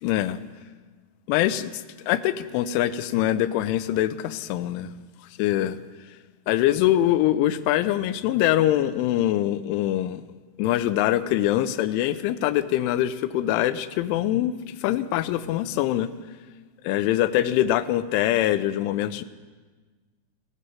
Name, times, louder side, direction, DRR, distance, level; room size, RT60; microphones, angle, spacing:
voice 1, 0.0-0.4 1.3-4.9 5.4-5.8 6.5-10.2 10.6-16.1 16.8-19.2, left 13 dB, 90° left, 13 dB, 3.1 m, -23 dB
16.5 x 13.5 x 5.6 m, 1.4 s
omnidirectional pair, 5.4 m